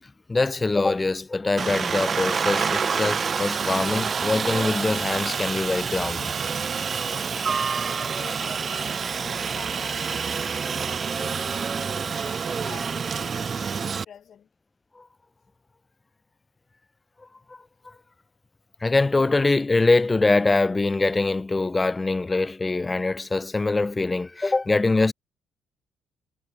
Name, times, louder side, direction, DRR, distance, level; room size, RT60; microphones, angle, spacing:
voice 1, 0.0-6.3 15.0-15.1 17.2-17.9 18.8-25.1, left 3 dB, 25° left, 1.0 m, -23 dB
Aircraft, 1.6-14.0, right 6 dB, 45° right, 1.0 m, -27 dB
voice 2, 8.0-11.5 11.9-14.5, left 8 dB, 60° left, 5.1 m, -47 dB
hypercardioid pair, 55°, 0 cm